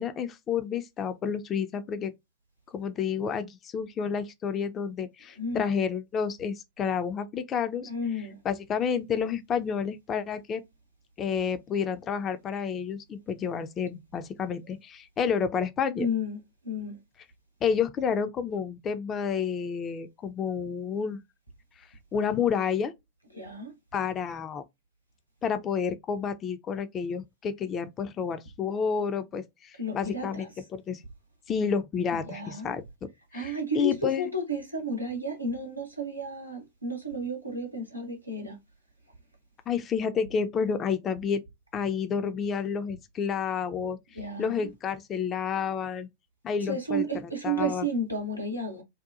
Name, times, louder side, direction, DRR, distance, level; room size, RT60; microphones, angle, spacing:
voice 1, 0.0-2.1 2.7-7.9 8.4-10.6 11.2-16.1 17.6-21.2 22.1-22.9 23.9-24.6 25.4-30.5 30.7-31.0 31.5-32.8 33.3-34.2 39.7-41.4 41.7-44.0 44.4-46.1 46.4-47.0 47.4-47.9, left 6 dB, 25° left, 0.4 m, -30 dB
voice 2, 5.4-5.7 7.8-8.4 16.0-16.4 16.6-17.0 23.3-23.7 29.8-30.5 32.1-32.7 33.3-38.6 44.1-44.7 46.6-48.8, right 1 dB, 90° right, 0.8 m, -32 dB
2.7 x 2.2 x 2.3 m
figure-of-eight pair, 90°, 0 cm